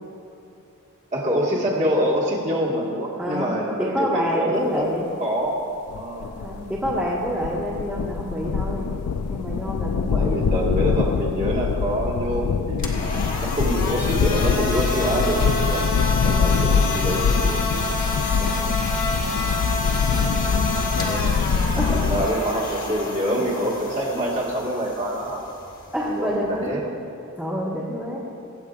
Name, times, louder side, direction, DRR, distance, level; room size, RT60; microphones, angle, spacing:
voice 1, 1.1-4.9 5.2-5.6 6.0-6.3 10.2-13.1 13.4-17.8 21.0-21.3 21.9-25.4 26.1-26.8, equal, 30° right, -4 dB, 1.8 m, -26 dB
voice 2, 3.1-3.5 3.8-5.1 6.2-8.8 9.3-10.4 16.4-16.9 18.4-18.8 20.1-20.3 21.7-22.1 25.9-26.8 27.4-28.2, equal, 5° right, -7 dB, 1.5 m, -27 dB
sound 1, 5.9-22.3, left 5 dB, 90° left, 0.4 m, -24 dB
sound 2, 12.7-26.7, left 2 dB, 40° left, 1.3 m, -29 dB
24.0 x 8.6 x 2.5 m, 2.6 s
head